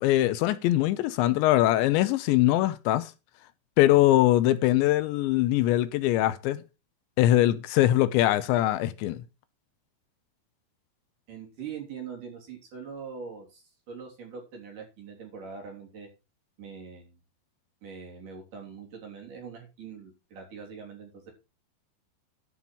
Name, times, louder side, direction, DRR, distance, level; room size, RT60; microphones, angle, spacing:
voice 1, 0.0-3.1 3.8-6.6 7.2-9.2, left 15 dB, 85° left, 3.0 m, -22 dB
voice 2, 11.3-16.1 16.6-17.2 17.8-21.3, right 6 dB, 50° right, 4.3 m, -42 dB
12.0 x 5.5 x 6.0 m
omnidirectional pair, 5.2 m